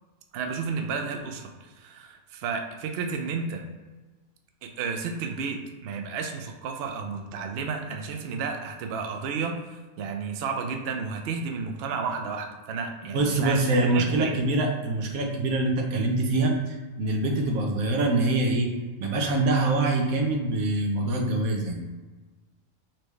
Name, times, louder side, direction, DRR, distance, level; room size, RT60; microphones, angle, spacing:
voice 1, 0.3-3.6 4.6-13.6 13.9-14.4, right 5 dB, 60° right, 4 dB, 0.7 m, -32 dB
voice 2, 13.1-18.7 19.0-21.8, right 2 dB, 90° right, 1 dB, 1.2 m, -24 dB
4.4 x 3.2 x 3.2 m, 1.3 s
omnidirectional pair, 1.4 m